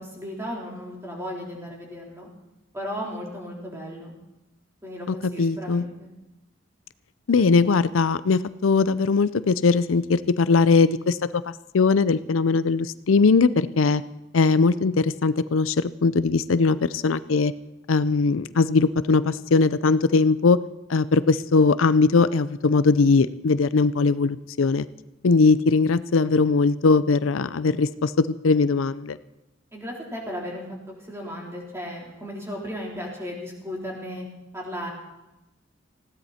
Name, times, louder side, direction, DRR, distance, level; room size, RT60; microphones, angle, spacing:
voice 1, 0.0-2.3 2.7-4.2 4.8-6.1 29.7-30.6 31.1-34.2 34.5-34.9, equal, 15° right, -2 dB, 4.0 m, -35 dB
voice 2, 5.1-5.8 7.3-11.2 11.5-14.0 14.3-17.5 17.9-20.6 20.9-24.9 25.2-29.2, left 4 dB, 85° left, 15 dB, 0.5 m, -20 dB
20.0 x 16.0 x 4.3 m, 0.97 s
head